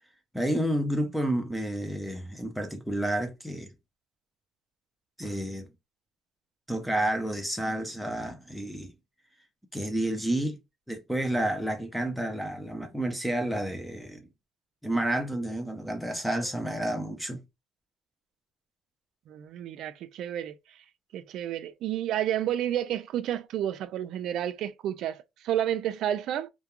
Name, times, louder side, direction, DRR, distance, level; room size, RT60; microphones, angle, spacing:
voice 1, 0.3-3.7 5.2-5.7 6.7-8.9 9.7-10.6 10.9-14.3 14.8-17.4, right 1 dB, ahead, 0.5 m, -30 dB
voice 2, 19.3-20.6 21.1-26.5, right 11 dB, 60° right, 0.3 m, -30 dB
2.2 x 2.2 x 2.9 m
cardioid pair, 130°, 0 cm